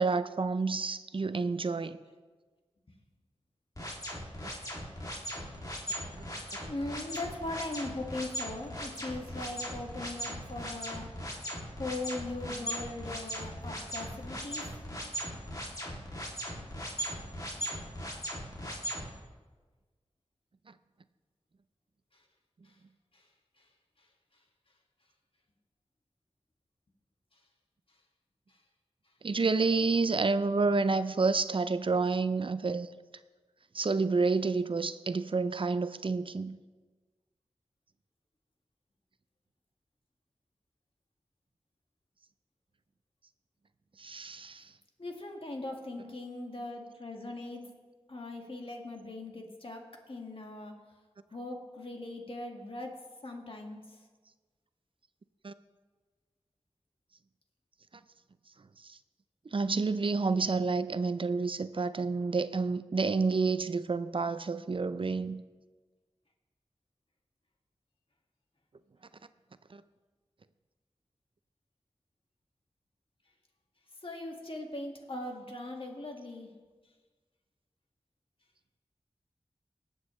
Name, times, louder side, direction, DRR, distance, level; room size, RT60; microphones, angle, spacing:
voice 1, 0.0-2.0 4.4-4.5 29.2-32.9 33.7-36.6 44.0-44.7 55.4-55.5 58.9-59.0 59.5-65.4 69.7-69.8, right 4 dB, 50° right, 13 dB, 0.4 m, -29 dB
sound 1, 3.8-19.1, equal, 35° left, 2.6 m, -38 dB
voice 2, 6.0-6.4 6.6-11.2 11.8-14.7 22.1-22.2 22.6-22.7 23.1-23.2 23.6-23.7 45.0-47.7 48.1-50.7 51.3-54.0 74.0-76.5, left 2 dB, 55° left, 1 dB, 1.9 m, -40 dB
19.5 x 8.2 x 3.2 m, 1.4 s
cardioid pair, 45°, 11 cm